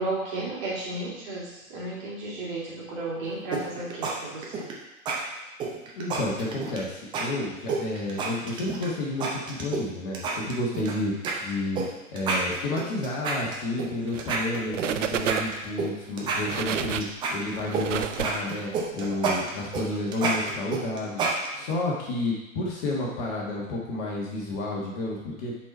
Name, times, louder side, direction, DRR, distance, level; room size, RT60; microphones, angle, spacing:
voice 1, 0.0-4.7, right 2 dB, 35° right, -6 dB, 2.5 m, -33 dB
sound 1, 3.5-4.1 4.4-4.7 5.1-5.2 5.6-6.8 7.1-7.2 7.7-8.9 9.2-9.8 10.1-10.9 11.2-11.3 11.8-11.9 12.2-13.9 14.2-15.9 16.2-17.8 18.1-21.7, right 4 dB, 10° right, 0.6 m, -29 dB
voice 2, 6.0-11.1 11.4-11.8 12.1-17.0 17.3-21.3 21.5-25.5, left 2 dB, 35° left, -3 dB, 1.4 m, -30 dB
sound 2, 14.1-14.5 14.7-15.7 16.2-18.9, right 9 dB, 60° right, 0.6 m, -31 dB
7.0 x 4.3 x 4.4 m, 0.98 s
figure-of-eight pair, 110°, 42 cm